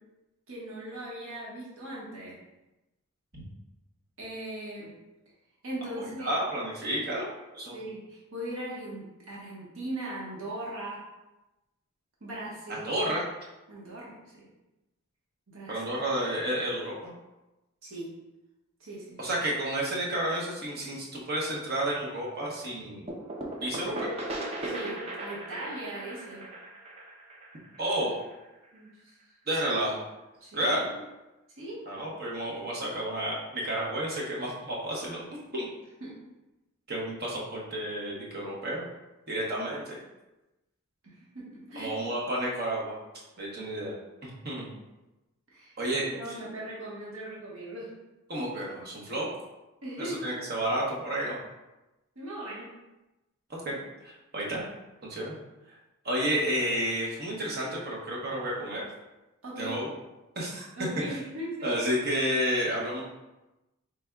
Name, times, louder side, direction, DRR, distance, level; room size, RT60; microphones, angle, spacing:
voice 1, 0.5-2.3 4.2-4.9 5.6-6.3 7.7-11.0 12.2-12.9 13.7-14.4 15.5-15.8 17.8-18.1 18.8-19.2 23.8-24.0 24.6-26.4 28.7-29.1 30.4-31.0 31.6-31.8 36.0-36.1 41.0-41.9 45.5-45.8 46.1-47.9 49.8-50.3 52.1-52.7 59.4-59.7 60.8-61.7, right 1 dB, 65° right, -6 dB, 1.2 m, -39 dB
voice 2, 6.0-7.8 12.7-13.2 15.7-17.1 19.2-23.0 23.6-24.1 27.8-28.2 29.5-30.0 30.5-30.9 31.9-35.7 36.9-38.8 39.3-40.0 41.7-43.0 43.4-43.9 44.2-44.7 45.8-46.4 48.3-49.4 50.0-51.4 53.5-54.6 55.0-55.3 55.7-55.8 56.0-58.9 59.6-59.9 60.4-60.7 61.1-61.2 61.6-63.0, right 1 dB, 45° right, -4 dB, 0.9 m, -31 dB
sound 1, 23.1-28.7, right 1 dB, 30° right, 0.4 m, -37 dB
5.0 x 3.4 x 2.3 m, 1.0 s
head